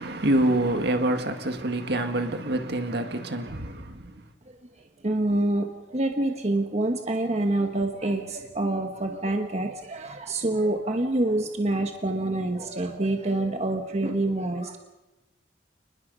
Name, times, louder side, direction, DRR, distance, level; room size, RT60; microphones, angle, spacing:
voice 1, 0.0-3.9, right 1 dB, 60° right, 1.9 m, -26 dB
voice 2, 5.0-14.8, right 2 dB, 35° right, 1.3 m, -26 dB
29.5 x 20.5 x 5.5 m
head